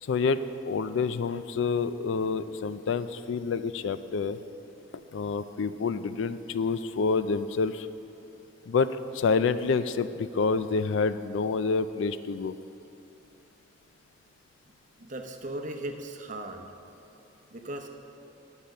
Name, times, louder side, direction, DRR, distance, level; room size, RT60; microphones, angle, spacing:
voice 1, 0.0-4.4 5.1-7.9 8.7-8.9 9.1-12.5, left 4 dB, 70° left, 13 dB, 0.4 m, -28 dB
voice 2, 15.0-16.7 17.5-17.9, right 1 dB, 40° right, 4 dB, 0.8 m, -37 dB
10.0 x 7.2 x 6.4 m, 2.9 s
head